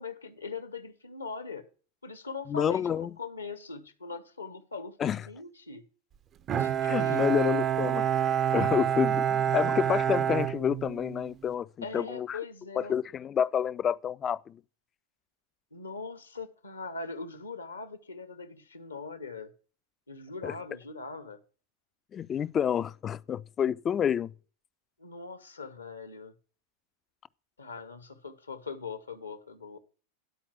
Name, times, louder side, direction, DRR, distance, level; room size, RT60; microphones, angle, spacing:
voice 1, 0.0-1.7 2.0-5.8 6.5-7.3 11.8-13.0 15.7-19.5 20.1-21.4 25.0-26.3 27.6-29.8, left 4 dB, 80° left, 1.1 m, -41 dB
voice 2, 2.5-3.1 5.0-5.2 6.8-8.1 8.5-12.4 12.8-14.6 20.4-20.5 22.1-24.3, left 8 dB, 25° left, 0.4 m, -29 dB
Bowed string instrument, 6.5-11.3, right 9 dB, 30° right, 0.5 m, -27 dB
10.5 x 4.5 x 7.3 m
figure-of-eight pair, 90°, 0 cm